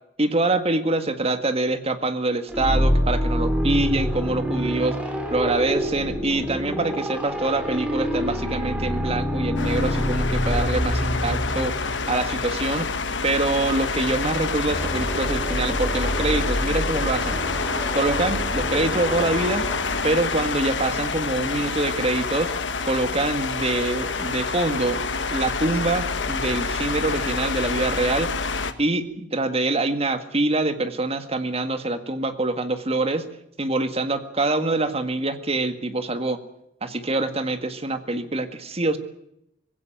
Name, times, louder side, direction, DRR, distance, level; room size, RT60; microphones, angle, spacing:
voice 1, 0.2-12.9 13.2-17.4 17.9-19.7 20.0-22.5 22.8-25.0 25.3-28.3 28.8-33.3 33.6-36.4 36.8-39.0, right 2 dB, 35° right, 9 dB, 1.9 m, -25 dB
sound 1, 2.5-12.2, equal, 5° right, 3.4 m, -25 dB
sound 2, 9.6-28.7, left 4 dB, 85° left, 1.6 m, -27 dB
sound 3, 14.7-20.1, equal, 15° left, 3.0 m, -30 dB
20.5 x 16.5 x 9.0 m, 0.79 s
head